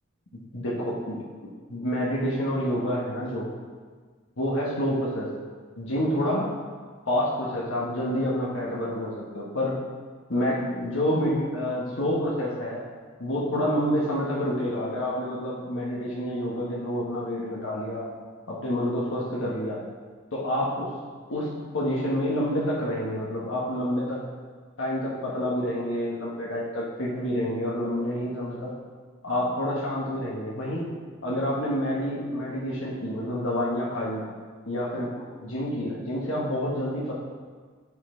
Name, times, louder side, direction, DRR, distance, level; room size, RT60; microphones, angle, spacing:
voice 1, 0.5-1.2 1.7-3.5 4.4-5.3 5.8-6.5 7.1-9.7 10.3-12.8 13.2-18.0 18.5-19.8 20.3-20.9 21.3-24.2 24.8-28.7 29.2-30.9 31.2-34.3 34.7-37.1, equal, 70° left, -5 dB, 1.4 m, -28 dB
7.6 x 6.0 x 4.4 m, 1.6 s
head